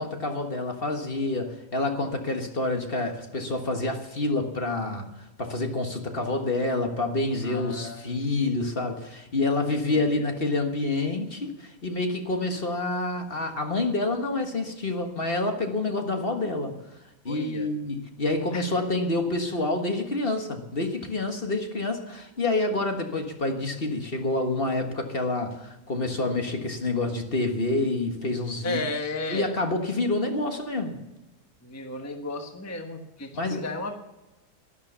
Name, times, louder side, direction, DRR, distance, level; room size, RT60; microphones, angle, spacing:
voice 1, 0.0-16.8 17.3-28.8 29.3-31.0 33.3-33.7, left 2 dB, 35° left, 1.6 m, -28 dB
voice 2, 7.4-8.1 9.9-10.3 17.3-17.7 18.5-18.6 28.6-29.5 31.6-33.9, left 2 dB, 10° left, 1.1 m, -34 dB
12.0 x 11.5 x 6.9 m
omnidirectional pair, 1.7 m